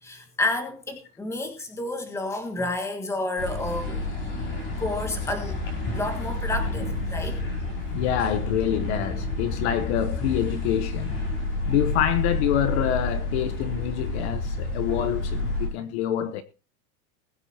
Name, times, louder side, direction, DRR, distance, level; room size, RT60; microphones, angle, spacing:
voice 1, 0.0-4.1 4.8-5.6 5.9-7.4, left 2 dB, 5° left, 1.5 m, -30 dB
sound 1, 3.4-15.7, left 2 dB, 25° left, 5.5 m, -29 dB
voice 2, 7.9-11.2 11.7-16.4, left 11 dB, 45° left, 1.0 m, -26 dB
20.5 x 9.6 x 2.8 m
supercardioid pair, 170°, 45 cm